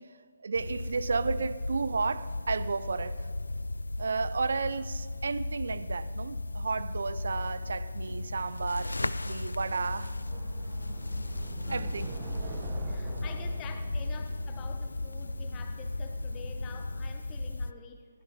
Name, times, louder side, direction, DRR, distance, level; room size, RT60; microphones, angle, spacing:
voice 1, 0.0-3.3 4.0-10.2 11.1-11.3 11.7-12.1, right 4 dB, 60° right, 0.7 m, -33 dB
sound 1, 0.6-17.7, left 2 dB, 80° left, 0.4 m, -35 dB
sound 2, 9.2-15.8, right 4 dB, 30° right, 1.4 m, -45 dB
sound 3, 10.8-17.1, left 1 dB, 60° left, 2.9 m, -54 dB
voice 2, 11.7-18.1, left 6 dB, 20° left, 1.3 m, -48 dB
20.0 x 15.0 x 3.8 m
figure-of-eight pair, 145°, 0 cm